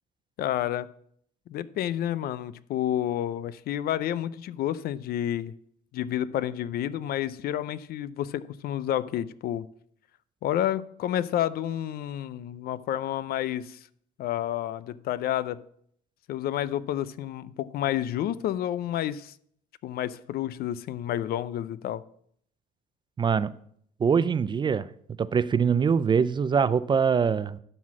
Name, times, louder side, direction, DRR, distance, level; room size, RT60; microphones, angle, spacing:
voice 1, 0.4-0.9 1.5-5.6 5.9-9.7 10.4-13.8 14.2-15.6 16.3-19.3 19.8-22.0, left 11 dB, 65° left, 17 dB, 0.5 m, -30 dB
voice 2, 23.2-23.5 24.0-24.9 25.2-27.6, right 6 dB, 25° right, 17 dB, 0.4 m, -23 dB
12.0 x 4.2 x 7.4 m, 0.67 s
cardioid pair, 110°, 17 cm